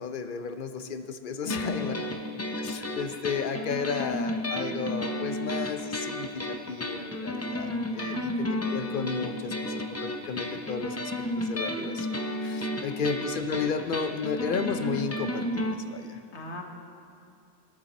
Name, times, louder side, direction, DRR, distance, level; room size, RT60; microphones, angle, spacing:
voice 1, 0.0-2.0 2.6-11.1 11.4-16.2, left 5 dB, 55° left, 8 dB, 0.8 m, -33 dB
voice 2, 1.4-2.0 8.0-8.3 12.7-12.8 16.3-16.6, left 3 dB, 85° left, 2 dB, 1.6 m, -38 dB
sound 1, 1.5-15.7, left 1 dB, 15° left, 0.6 m, -32 dB
20.5 x 8.6 x 4.2 m, 2.5 s
omnidirectional pair, 1.1 m